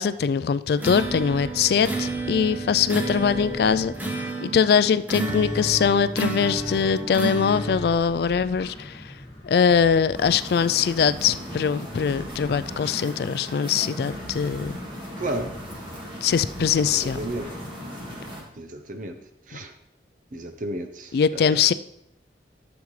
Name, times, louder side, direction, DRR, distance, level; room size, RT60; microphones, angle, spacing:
voice 1, 0.0-3.9 4.4-9.0 9.4-14.7 16.2-17.2 21.1-21.7, left 6 dB, 60° left, 14 dB, 0.3 m, -22 dB
sound 1, 0.8-8.0, right 2 dB, 10° right, 1.0 m, -30 dB
sound 2, 0.9-18.5, left 1 dB, 35° left, 1.8 m, -44 dB
sound 3, 10.1-18.4, equal, 25° right, 1.8 m, -38 dB
voice 2, 15.2-15.5 16.9-17.6 18.5-19.2 19.5-19.7 20.3-21.6, right 1 dB, 45° right, 7 dB, 0.8 m, -33 dB
12.0 x 7.1 x 3.2 m, 0.79 s
head